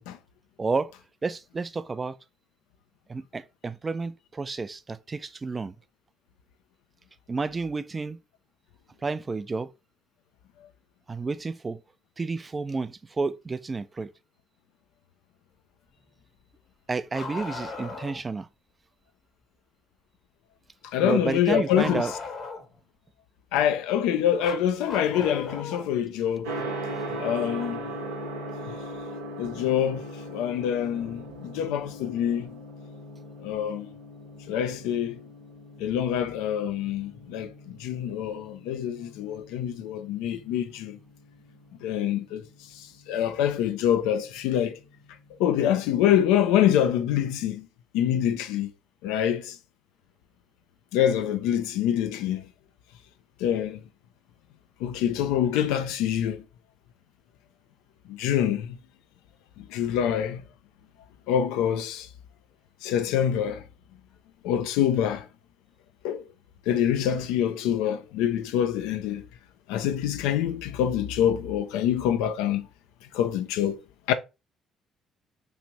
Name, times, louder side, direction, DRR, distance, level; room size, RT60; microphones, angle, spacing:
voice 1, 0.6-0.9 1.2-2.2 3.1-5.7 7.3-8.2 9.0-9.7 11.1-11.8 12.2-14.1 16.9-18.5 21.0-22.1, right 4 dB, 30° right, 0.3 m, -30 dB
Bark, 17.1-18.2 21.8-22.8 24.4-25.9 27.6-27.7 29.6-29.7 30.8-30.9, left 3 dB, 55° left, 1.0 m, -37 dB
voice 2, 20.9-22.1 23.5-26.5 27.2-27.8 28.7-28.8 29.4-32.6 33.4-33.9 34.5-35.2 35.8-41.0 41.8-42.4 42.7-44.8 45.4-47.7 47.9-48.7 49.0-49.6 50.9-52.4 53.4-53.8 54.8-56.4 58.1-58.8 59.6-60.4 61.3-62.1 62.8-63.6 64.4-65.3 66.0-66.2 66.7-69.3 69.7-72.7 73.1-73.8 74.1-74.2, left 10 dB, 75° left, 0.3 m, -26 dB
Gong, 26.4-45.4, right 1 dB, 85° right, 0.7 m, -40 dB
3.1 x 2.4 x 2.8 m
hypercardioid pair, 50°, 0 cm